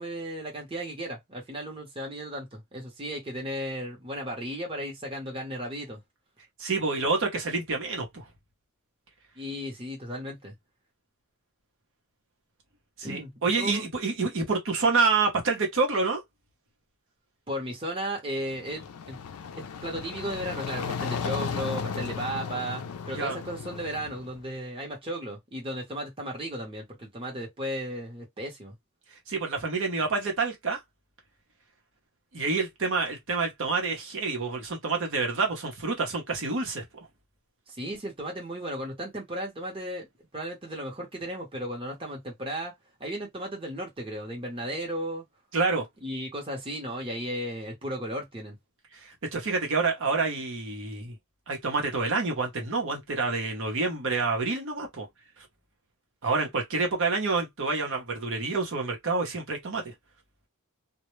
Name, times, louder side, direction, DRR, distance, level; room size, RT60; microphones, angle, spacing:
voice 1, 0.0-6.0 9.4-10.5 13.0-13.8 17.5-19.2 19.6-28.8 37.7-40.1 40.3-42.7 43.0-45.2 46.0-48.6, equal, 25° right, 0.8 m, -35 dB
voice 2, 6.6-8.2 13.0-16.2 23.2-23.4 29.3-30.8 32.3-36.8 45.5-45.9 49.0-51.2 51.5-55.1 55.4-55.5 56.2-59.9, right 4 dB, 60° right, 0.8 m, -28 dB
sound 1, 18.4-24.4, left 5 dB, 90° left, 0.4 m, -35 dB
2.1 x 2.1 x 3.0 m
head